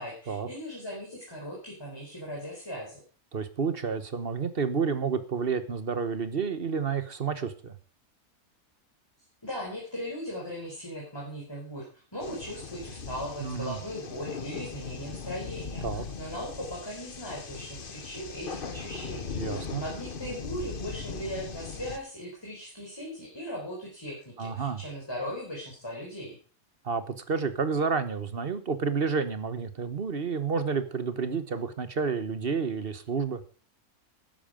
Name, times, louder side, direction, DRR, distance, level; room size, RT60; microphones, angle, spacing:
voice 1, 0.0-3.0 9.4-11.9 12.1-26.4, equal, 15° left, -3 dB, 4.5 m, -38 dB
voice 2, 3.3-7.7 13.4-13.8 15.8-16.0 19.4-19.8 24.4-24.8 26.8-33.4, right 5 dB, 40° right, 12 dB, 1.3 m, -30 dB
sound 1, 12.2-22.0, left 5 dB, 40° left, 1.2 m, -39 dB
13.0 x 11.0 x 5.1 m, 0.38 s
omnidirectional pair, 1.6 m